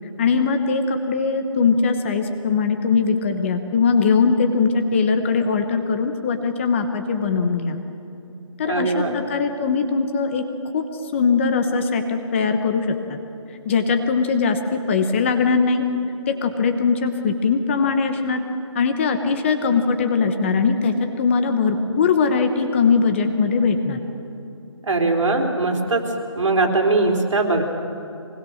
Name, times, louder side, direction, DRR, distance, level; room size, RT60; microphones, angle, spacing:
voice 1, 0.2-7.8 8.6-10.4 10.7-10.9 11.1-13.2 13.6-15.9 16.3-18.4 18.7-24.0, left 5 dB, 25° left, 7 dB, 1.1 m, -21 dB
voice 2, 8.6-9.2 24.8-26.0 26.3-27.6, right 3 dB, 70° right, 1 dB, 4.0 m, -20 dB
24.5 x 20.0 x 6.5 m, 2.7 s
hypercardioid pair, 165°, 16 cm